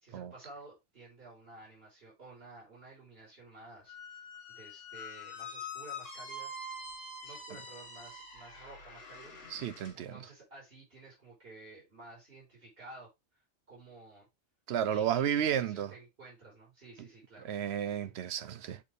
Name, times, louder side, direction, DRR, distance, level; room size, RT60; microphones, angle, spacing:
voice 1, 0.0-4.0 4.5-6.5 7.2-9.6 9.9-13.4 13.7-14.3 14.9-17.6, right 2 dB, 45° right, 3.8 m, -53 dB
Squeak, 3.9-10.0, left 2 dB, 65° left, 2.0 m, -45 dB
voice 2, 9.5-10.1 14.7-15.9 17.4-18.8, right 9 dB, 65° right, 0.8 m, -32 dB
7.3 x 4.2 x 3.3 m
omnidirectional pair, 1.3 m